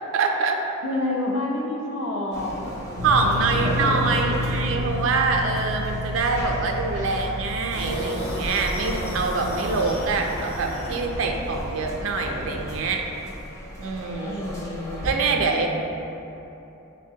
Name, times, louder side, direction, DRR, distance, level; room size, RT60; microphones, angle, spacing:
voice 1, 0.1-0.6 3.0-13.0 13.8-14.4 15.0-15.7, right 3 dB, 70° right, 2 dB, 0.4 m, -25 dB
voice 2, 0.8-2.8 14.2-15.7, left 1 dB, 65° left, -2 dB, 0.6 m, -29 dB
sound 1, 2.3-15.1, equal, 15° left, 0.5 m, -37 dB
sound 2, 3.0-8.0, left 1 dB, 45° left, 1.1 m, -29 dB
sound 3, 7.7-12.8, equal, 90° left, 1.1 m, -32 dB
6.2 x 2.1 x 2.7 m, 3.0 s
head